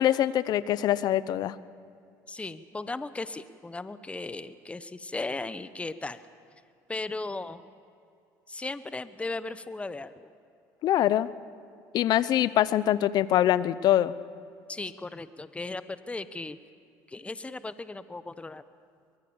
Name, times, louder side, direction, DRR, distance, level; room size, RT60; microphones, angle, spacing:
voice 1, 0.0-1.6 10.8-11.3 11.9-14.1, left 12 dB, 60° left, 17 dB, 0.8 m, -24 dB
voice 2, 2.3-6.2 6.9-7.6 8.5-10.3 14.7-16.6 17.1-18.6, left 3 dB, 15° left, 13 dB, 1.1 m, -36 dB
23.5 x 22.0 x 7.2 m, 2.4 s
supercardioid pair, 85°, 8 cm